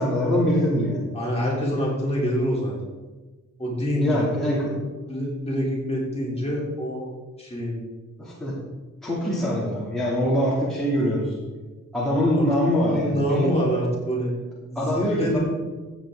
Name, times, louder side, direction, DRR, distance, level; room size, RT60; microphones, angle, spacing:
voice 1, 0.0-1.0 3.9-4.6 8.2-8.5 9.0-11.4 11.9-13.5 14.7-15.4, equal, ahead, -8 dB, 2.8 m, -23 dB
voice 2, 1.1-2.7 3.6-4.2 5.1-7.1 7.4-7.8 12.3-14.3 14.7-15.4, equal, 20° left, -5 dB, 3.5 m, -26 dB
15.0 x 8.3 x 3.8 m, 1.3 s
wide cardioid pair, 145°, 30 cm